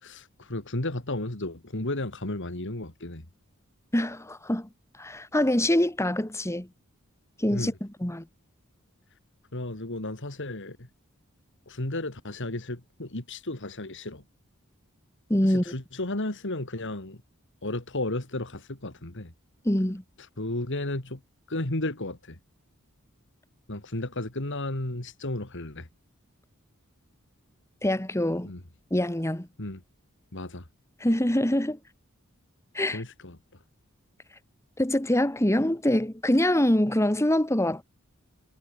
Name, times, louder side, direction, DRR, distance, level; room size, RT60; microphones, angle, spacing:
voice 1, 0.0-3.3 7.5-7.7 9.5-10.9 11.7-14.2 15.4-17.2 17.6-19.3 20.4-21.2 21.5-22.4 23.7-25.9 28.4-28.6 29.6-29.8 30.3-30.6 32.9-33.4, left 2 dB, 60° left, 2.9 m, -33 dB
voice 2, 3.9-4.7 5.0-6.7 7.4-8.2 15.3-15.6 19.6-20.0 27.8-28.5 28.9-29.5 31.0-31.8 32.7-33.0 34.8-37.8, left 1 dB, 15° left, 1.7 m, -24 dB
head